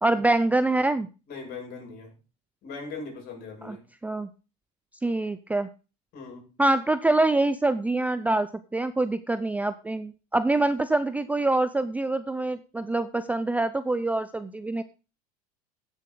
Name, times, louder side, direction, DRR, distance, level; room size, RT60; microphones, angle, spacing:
voice 1, 0.0-1.1 3.6-3.8 4.0-4.3 5.0-5.7 6.6-14.8, right 2 dB, 10° right, 13 dB, 0.5 m, -25 dB
voice 2, 1.3-2.1 2.6-3.8 6.1-6.5, left 4 dB, 50° left, 1 dB, 6.5 m, -39 dB
16.0 x 7.1 x 3.8 m, 0.32 s
supercardioid pair, 120°, 20 cm